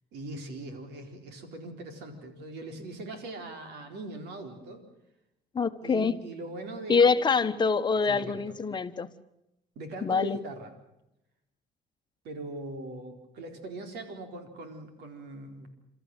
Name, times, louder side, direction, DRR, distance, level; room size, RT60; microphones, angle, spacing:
voice 1, 0.1-4.8 5.8-7.4 8.1-8.4 9.8-10.7 12.2-15.8, right 2 dB, 80° right, 6 dB, 4.3 m, -41 dB
voice 2, 5.5-6.1 6.9-9.1 10.0-10.4, left 5 dB, 25° left, 9 dB, 1.3 m, -25 dB
29.5 x 13.5 x 9.1 m, 0.86 s
cardioid pair, 110°, 17 cm